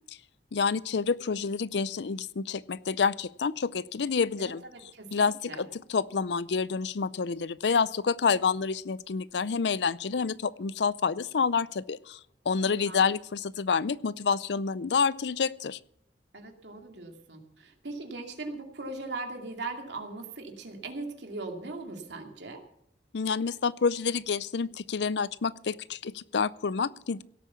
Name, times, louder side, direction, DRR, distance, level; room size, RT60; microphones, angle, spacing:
voice 1, 0.5-4.6 5.1-12.2 12.5-15.8 23.1-27.2, left 5 dB, 75° left, 19 dB, 0.5 m, -28 dB
voice 2, 4.4-5.7 12.6-13.1 16.3-22.6, right 3 dB, 80° right, 3 dB, 2.6 m, -40 dB
17.0 x 8.4 x 7.1 m, 0.74 s
head